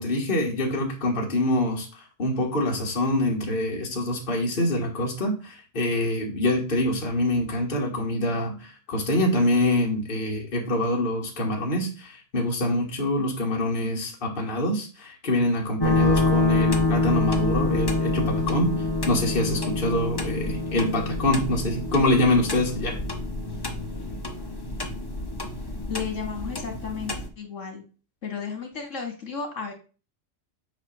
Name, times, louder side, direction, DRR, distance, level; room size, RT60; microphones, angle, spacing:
voice 1, 0.0-18.7 19.1-23.0, left 1 dB, 40° left, 0 dB, 1.6 m, -25 dB
sound 1, 15.8-27.3, left 3 dB, 20° left, 0.8 m, -27 dB
voice 2, 25.9-27.8 28.2-29.7, left 6 dB, 65° left, 3 dB, 2.0 m, -33 dB
8.0 x 2.9 x 6.1 m, 0.35 s
omnidirectional pair, 1.4 m